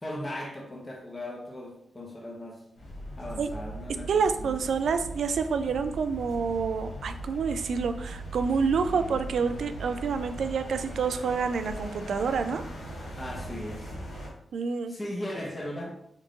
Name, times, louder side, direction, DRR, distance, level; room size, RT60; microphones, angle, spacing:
voice 1, 0.0-2.6 3.2-4.5 13.1-13.9 14.9-15.9, left 1 dB, 25° left, -1 dB, 0.9 m, -38 dB
sound 1, 2.8-14.3, right 1 dB, 85° left, 1.4 m, -39 dB
voice 2, 4.1-12.6 14.5-14.9, right 5 dB, 80° right, 9 dB, 0.3 m, -28 dB
3.6 x 2.7 x 3.8 m, 0.72 s
cardioid pair, 70°, 0 cm